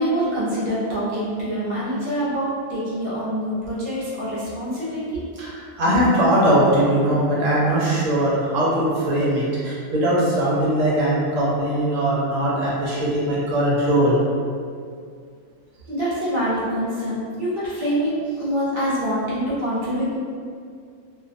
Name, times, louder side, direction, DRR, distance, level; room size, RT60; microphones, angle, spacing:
voice 1, 0.0-5.2 15.9-18.1 18.4-20.2, equal, 50° right, -9 dB, 0.9 m, -25 dB
voice 2, 5.4-14.2, right 1 dB, 75° right, -7 dB, 1.0 m, -20 dB
2.5 x 2.1 x 2.5 m, 2.2 s
omnidirectional pair, 1.4 m